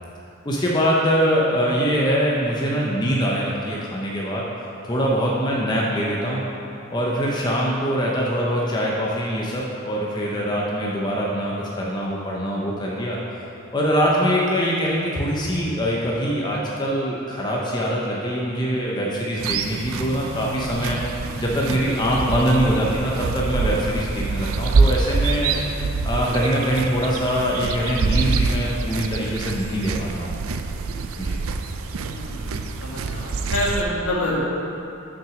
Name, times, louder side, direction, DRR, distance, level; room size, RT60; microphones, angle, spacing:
voice 1, 0.4-4.4 4.8-6.5 6.9-13.2 13.7-21.0 21.4-25.5 26.0-30.3 31.2-31.4, equal, 20° left, -4 dB, 0.6 m, -23 dB
sound 1, 19.4-33.8, right 4 dB, 75° right, 0.4 m, -25 dB
voice 2, 32.0-34.4, left 1 dB, 80° left, -6 dB, 1.8 m, -27 dB
6.1 x 6.1 x 4.9 m, 2.8 s
head